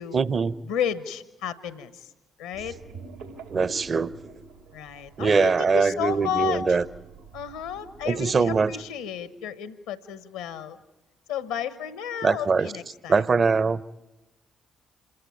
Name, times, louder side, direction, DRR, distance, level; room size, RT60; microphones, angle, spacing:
voice 1, 0.1-0.5 3.5-4.1 5.2-6.8 8.1-8.8 12.2-12.7 13.1-13.8, right 5 dB, 45° right, 0.7 m, -22 dB
voice 2, 0.7-2.1 2.4-2.8 4.7-6.8 7.3-10.8 11.3-13.2, left 8 dB, 80° left, 1.0 m, -32 dB
sound 1, 2.5-8.6, right 3 dB, 90° right, 3.2 m, -46 dB
27.0 x 15.5 x 9.4 m
hypercardioid pair, 40°, 0 cm